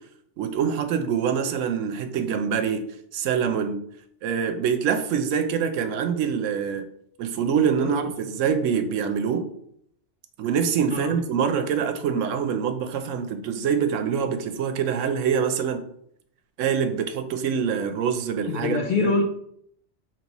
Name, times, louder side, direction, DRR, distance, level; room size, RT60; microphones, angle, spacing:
voice 1, 0.4-2.8 3.1-3.8 4.2-6.9 7.2-9.5 10.4-15.8 16.6-19.1, right 7 dB, 85° right, 8 dB, 0.9 m, -25 dB
voice 2, 18.5-19.2, left 3 dB, 55° left, 2 dB, 0.5 m, -25 dB
5.2 x 3.0 x 2.9 m, 0.69 s
omnidirectional pair, 1.3 m